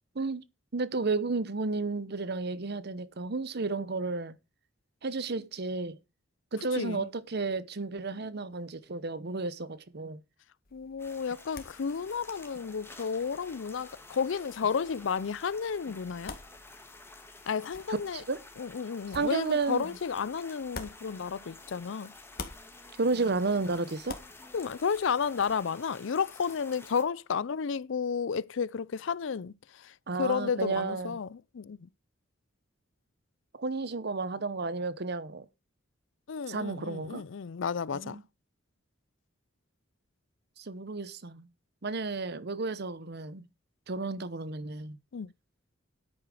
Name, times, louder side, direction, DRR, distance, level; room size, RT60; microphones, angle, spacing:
voice 1, 0.7-4.4 5.0-6.0 6.5-10.2 18.1-18.4 19.1-19.9 23.0-24.2 30.1-31.2 33.6-35.5 36.5-37.2 37.9-38.2 40.6-41.5 41.8-43.4 43.9-45.0, right 3 dB, 55° right, 0.9 m, -32 dB
voice 2, 6.7-7.1 10.7-16.3 17.5-18.2 18.6-22.1 24.5-31.9 36.3-38.2 45.1-45.3, left 6 dB, 65° left, 0.5 m, -32 dB
sound 1, 10.7-21.8 22.1-25.5, left 4 dB, 50° left, 1.8 m, -49 dB
sound 2, 11.0-27.0, left 3 dB, 10° left, 2.1 m, -51 dB
9.9 x 8.8 x 4.9 m
head